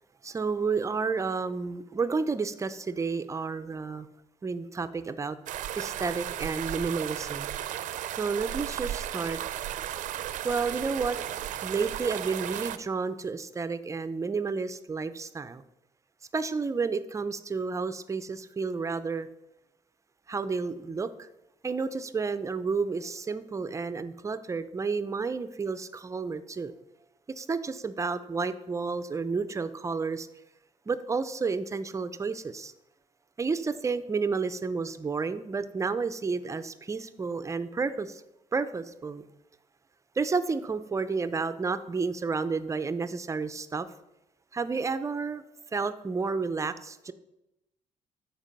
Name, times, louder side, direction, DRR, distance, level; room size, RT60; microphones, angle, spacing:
voice 1, 0.2-4.1 4.4-5.4 5.8-7.5 8.1-9.4 10.4-11.2 11.6-15.6 16.3-19.3 20.3-21.3 21.6-26.7 27.4-30.3 30.9-32.7 33.4-38.2 38.5-39.2 40.2-43.9 44.5-45.4 45.7-47.1, right 4 dB, 25° right, 12 dB, 0.5 m, -31 dB
sound 1, 5.5-12.8, right 12 dB, 85° right, 0.5 m, -35 dB
11.5 x 4.7 x 5.2 m, 0.90 s
cardioid pair, 120°, 13 cm